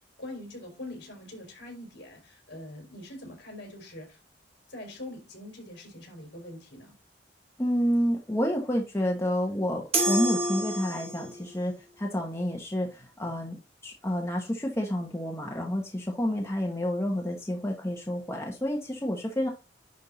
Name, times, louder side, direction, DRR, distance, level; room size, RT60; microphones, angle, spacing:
voice 1, 0.2-4.2 4.7-6.9, left 1 dB, 65° left, 4.4 m, -43 dB
voice 2, 7.6-19.5, equal, 15° left, 1.3 m, -29 dB
sound 1, 9.9-11.4, right 2 dB, 35° right, 2.3 m, -28 dB
10.5 x 3.7 x 4.1 m
head